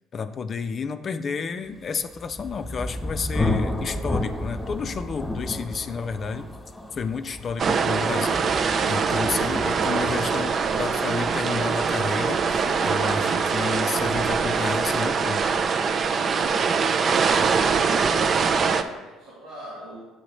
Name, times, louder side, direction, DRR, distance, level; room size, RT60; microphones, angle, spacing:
voice 1, 0.1-6.5 6.9-15.4, left 5 dB, 45° left, 10 dB, 0.4 m, -31 dB
Thunder, 2.0-13.6, left 2 dB, 10° left, 1.4 m, -32 dB
sound 1, 7.6-18.8, right 5 dB, 45° right, 0.5 m, -23 dB
voice 2, 18.5-20.0, right 1 dB, 80° right, -7 dB, 2.4 m, -44 dB
8.5 x 2.9 x 6.3 m, 1.1 s
hypercardioid pair, 60°, 0 cm